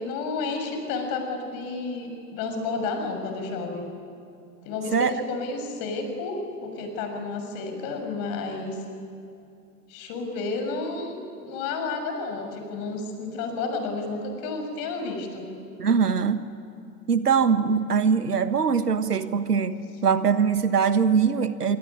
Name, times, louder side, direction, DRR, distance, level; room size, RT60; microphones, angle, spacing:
voice 1, 0.0-3.9 4.6-8.8 9.9-15.5, left 3 dB, 45° left, 5 dB, 6.4 m, -31 dB
voice 2, 15.8-16.4 17.1-21.8, right 6 dB, 80° right, 13 dB, 1.3 m, -22 dB
26.5 x 23.0 x 9.7 m, 2.6 s
figure-of-eight pair, 85°, 46 cm